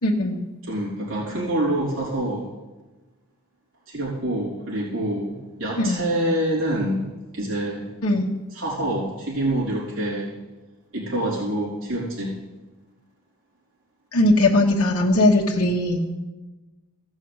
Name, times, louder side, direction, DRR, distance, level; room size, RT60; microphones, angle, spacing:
voice 1, 0.0-0.4 5.8-6.0 8.0-8.3 14.1-16.1, left 1 dB, 90° left, -2 dB, 1.3 m, -19 dB
voice 2, 0.7-2.5 3.9-7.1 7.3-7.9 8.5-10.3 10.9-12.4, right 1 dB, 60° right, -6 dB, 3.9 m, -26 dB
15.5 x 6.3 x 8.0 m, 1.2 s
head